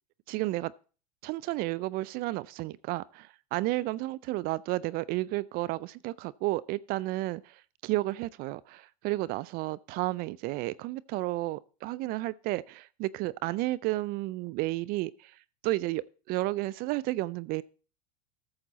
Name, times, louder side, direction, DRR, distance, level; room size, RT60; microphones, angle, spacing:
voice 1, 0.3-0.7 1.2-15.4 15.6-17.6, right 19 dB, 45° right, 0.4 m, -32 dB
13.5 x 7.2 x 4.0 m
hypercardioid pair, 95°, 21 cm